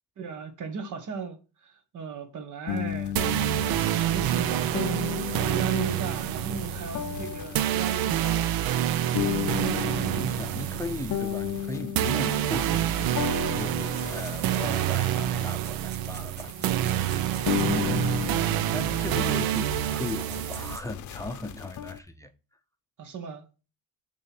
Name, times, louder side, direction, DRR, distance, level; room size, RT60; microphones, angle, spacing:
voice 1, 0.2-3.2 3.9-8.8 18.9-19.0 23.0-23.5, right 6 dB, 60° right, 1.4 m, -36 dB
sound 1, 2.7-15.5 15.9-16.6 16.9-22.0, left 10 dB, 60° left, 0.7 m, -35 dB
sound 2, 3.2-20.8, right 12 dB, 85° right, 0.6 m, -27 dB
voice 2, 9.7-22.3, left 2 dB, 10° left, 0.6 m, -38 dB
sound 3, 14.0-15.0 15.4-18.1 19.2-19.3 19.5-20.9, right 5 dB, 30° right, 0.7 m, -47 dB
6.5 x 3.2 x 5.9 m
cardioid pair, 115°, 34 cm